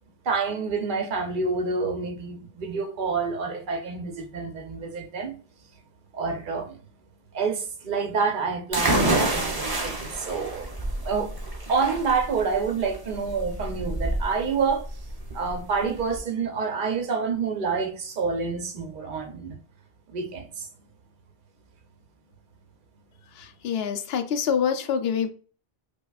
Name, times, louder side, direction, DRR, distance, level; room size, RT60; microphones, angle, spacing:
voice 1, 0.2-5.3 6.1-6.8 7.3-10.6 11.0-11.3 11.7-14.9 15.3-19.6 20.1-20.7, right 5 dB, 55° right, 0.9 m, -28 dB
sound 1, 8.7-16.2, right 1 dB, 25° right, 0.7 m, -28 dB
voice 2, 23.4-25.3, left 7 dB, 75° left, 0.8 m, -26 dB
5.2 x 2.3 x 2.3 m
omnidirectional pair, 1.0 m